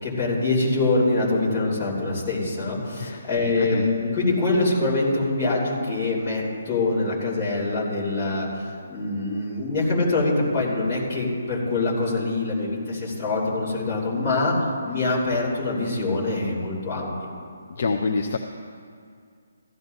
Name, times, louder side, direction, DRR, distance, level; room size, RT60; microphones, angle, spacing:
voice 1, 0.0-8.5 8.9-14.5 14.8-17.1, left 2 dB, 20° left, -7 dB, 2.9 m, -24 dB
voice 2, 3.6-3.9 17.8-18.4, left 4 dB, 40° left, 4 dB, 0.5 m, -26 dB
15.5 x 13.5 x 2.7 m, 2.2 s
hypercardioid pair, 175°, 0 cm